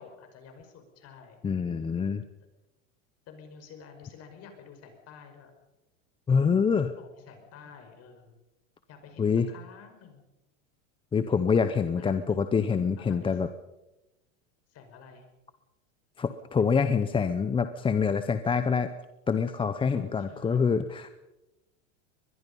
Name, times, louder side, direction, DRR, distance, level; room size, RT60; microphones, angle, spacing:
voice 1, 0.0-1.4 3.3-5.5 6.9-8.4 8.9-10.2 12.0-12.4 13.0-13.5 14.7-15.2 19.9-20.6, left 6 dB, 40° left, 6 dB, 5.4 m, -50 dB
voice 2, 1.4-2.2 6.3-6.9 9.2-9.5 11.1-13.5 16.2-18.9 19.3-21.1, left 6 dB, 15° left, 10 dB, 0.7 m, -26 dB
24.0 x 21.0 x 5.4 m, 0.97 s
supercardioid pair, 140°, 39 cm